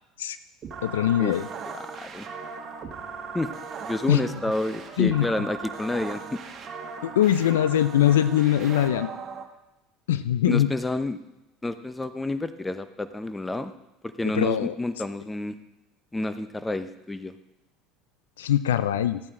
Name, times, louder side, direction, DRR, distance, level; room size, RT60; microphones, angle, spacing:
sound 1, 0.6-9.4, right 5 dB, 40° right, 1.4 m, -38 dB
voice 1, 0.8-1.5 4.1-4.2 5.0-5.3 7.0-9.1 10.1-10.7 14.3-14.8 18.4-19.2, left 11 dB, 85° left, 13 dB, 0.4 m, -22 dB
voice 2, 3.8-6.4 10.5-11.2 11.6-13.7 14.2-15.6 16.1-17.3, left 2 dB, 15° left, 11 dB, 0.8 m, -29 dB
14.0 x 8.6 x 3.7 m, 0.93 s
hypercardioid pair, 75°, 0 cm